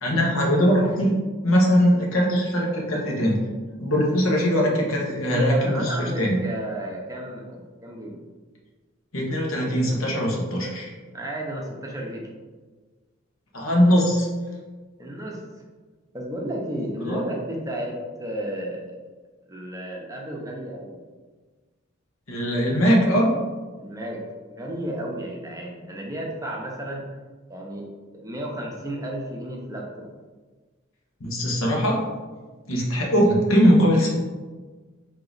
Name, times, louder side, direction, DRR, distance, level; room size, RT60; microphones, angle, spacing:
voice 1, 0.0-3.4 3.8-6.4 9.1-10.9 13.5-14.3 17.1-17.2 22.3-23.3 31.2-32.0 32.7-34.1, equal, 75° left, -2 dB, 1.1 m, -21 dB
voice 2, 5.2-8.1 11.1-12.3 15.0-15.4 16.1-18.9 19.5-21.0 23.7-24.2 24.5-27.1 27.5-30.1, right 1 dB, 15° right, -2 dB, 0.7 m, -33 dB
4.6 x 2.8 x 4.0 m, 1.3 s
head